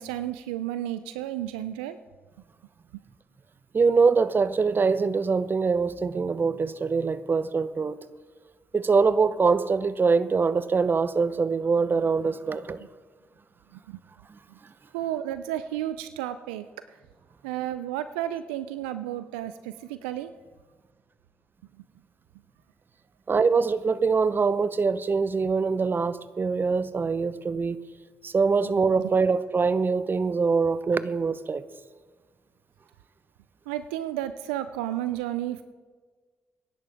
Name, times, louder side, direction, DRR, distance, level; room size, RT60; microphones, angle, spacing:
voice 1, 0.0-2.0 2.9-3.0 13.7-14.0 14.9-17.0 17.4-20.3 29.0-29.1 33.7-35.6, right 12 dB, 85° right, 12 dB, 0.4 m, -32 dB
voice 2, 3.7-8.0 8.7-12.8 23.3-27.8 28.2-31.6, right 4 dB, 40° right, 15 dB, 0.8 m, -23 dB
23.5 x 11.0 x 3.5 m, 1.5 s
hypercardioid pair, 45°, 6 cm